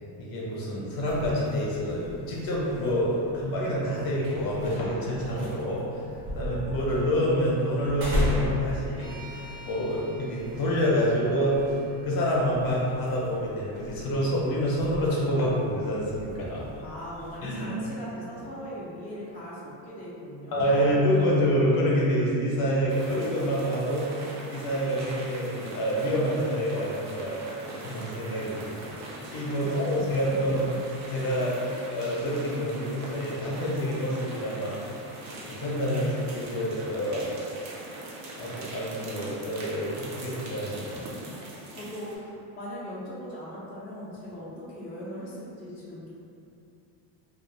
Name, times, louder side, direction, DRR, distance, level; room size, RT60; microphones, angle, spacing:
voice 1, 0.2-6.0 6.3-11.6 12.0-16.6 17.4-17.8 20.5-29.0 29.3-30.7 31.1-34.7 35.4-37.3 38.3-41.1, equal, 50° left, -5 dB, 0.8 m, -27 dB
sound 1, 1.1-17.4, equal, 55° right, 0.8 m, -37 dB
sound 2, 9.0-13.2, right 2 dB, 85° right, 0.8 m, -49 dB
voice 2, 16.8-21.0 29.6-30.6 41.7-46.1, equal, 20° left, -9 dB, 0.4 m, -40 dB
sound 3, 22.9-42.2, right 2 dB, 40° right, 0.4 m, -41 dB
2.4 x 2.0 x 3.2 m, 2.6 s
cardioid pair, 125°, 46 cm